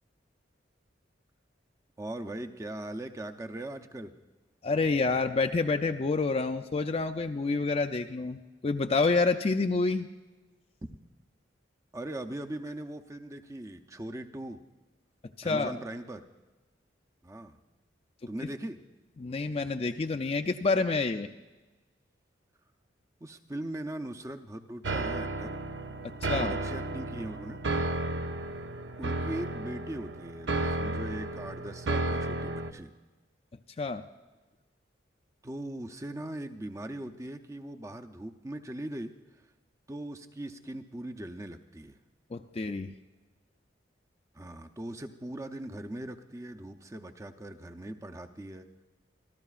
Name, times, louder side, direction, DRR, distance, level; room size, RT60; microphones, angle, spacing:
voice 1, 2.0-4.1 10.8-11.0 11.9-14.6 15.4-16.3 17.2-17.6 18.3-18.8 23.2-25.6 26.3-27.6 29.0-32.9 35.4-39.1 39.9-42.0 44.3-48.7, right 1 dB, 15° right, 6 dB, 0.6 m, -40 dB
voice 2, 4.6-10.1 15.4-15.7 18.4-18.5 19.2-21.3 26.0-26.5 33.8-34.0 42.3-42.9, left 3 dB, 35° left, 6 dB, 0.4 m, -28 dB
sound 1, 24.8-32.7, right 2 dB, 70° right, 0.7 m, -33 dB
26.5 x 13.0 x 2.4 m, 1.2 s
head